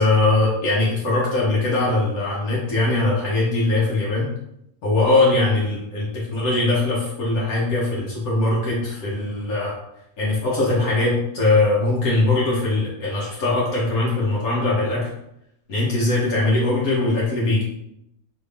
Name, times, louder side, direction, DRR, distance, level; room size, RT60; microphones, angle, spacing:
voice 1, 0.0-4.3 4.8-9.7 10.2-15.1 15.7-17.6, left 2 dB, 80° left, -5 dB, 1.4 m, -21 dB
4.1 x 3.0 x 3.4 m, 0.81 s
omnidirectional pair, 1.5 m